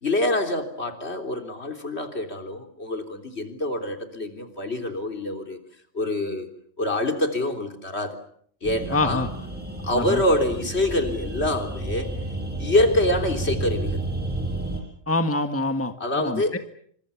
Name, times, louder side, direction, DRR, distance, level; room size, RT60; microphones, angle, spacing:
voice 1, 0.0-5.6 5.9-6.5 6.8-8.2 8.6-9.2 9.8-12.1 12.6-14.0 16.0-16.6, left 1 dB, 55° left, 5 dB, 3.8 m, -25 dB
sound 1, 8.6-14.8, right 2 dB, 5° right, 7.2 m, -31 dB
voice 2, 8.9-9.3 10.0-10.2 15.1-16.6, left 2 dB, 10° left, 7 dB, 1.5 m, -25 dB
28.0 x 26.0 x 7.1 m, 0.65 s
omnidirectional pair, 1.3 m